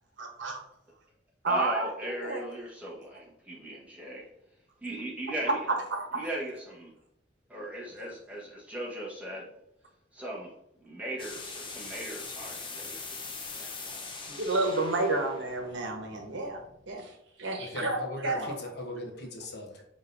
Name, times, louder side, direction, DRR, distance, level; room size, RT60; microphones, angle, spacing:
voice 1, 0.2-0.6 1.4-2.4 5.9-6.2 14.3-18.6, right 2 dB, 80° right, 2 dB, 1.0 m, -31 dB
voice 2, 1.4-4.3 4.8-5.6 6.1-6.9 7.5-9.5 10.1-10.5 10.8-14.3, right 1 dB, 10° right, -5 dB, 1.3 m, -38 dB
sound 1, 11.2-16.9, left 4 dB, 25° left, 0.7 m, -42 dB
voice 3, 17.6-19.8, left 1 dB, 60° left, 1 dB, 1.0 m, -39 dB
5.2 x 3.8 x 2.6 m, 0.76 s
head